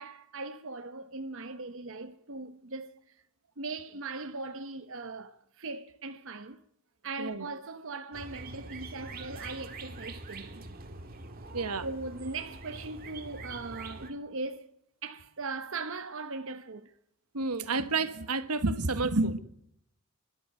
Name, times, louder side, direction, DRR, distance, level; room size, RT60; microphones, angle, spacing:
voice 1, 0.0-3.0 3.6-6.6 7.0-10.8 11.8-14.7 15.0-16.9, right 3 dB, 60° right, 1.0 m, -39 dB
voice 2, 7.2-7.5 11.5-11.9 17.3-19.4, right 3 dB, 90° right, 1.5 m, -29 dB
sound 1, 8.1-14.1, right 3 dB, 40° right, 1.9 m, -44 dB
29.0 x 12.5 x 8.0 m
head